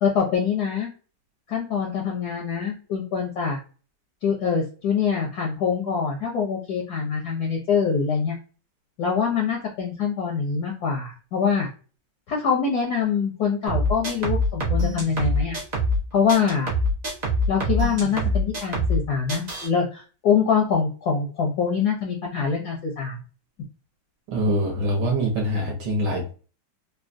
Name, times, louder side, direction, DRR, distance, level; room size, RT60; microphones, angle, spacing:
voice 1, 0.0-0.9 1.5-3.6 4.2-8.4 9.0-11.7 12.3-15.6 16.1-16.7 17.5-23.2, left 6 dB, 65° left, 0 dB, 1.0 m, -24 dB
sound 1, 13.7-16.0 16.3-19.0 19.3-19.7, equal, 85° right, 0.3 m, -24 dB
voice 2, 24.3-26.3, right 1 dB, 65° right, 0 dB, 1.3 m, -24 dB
3.6 x 2.2 x 2.5 m, 0.36 s
omnidirectional pair, 2.3 m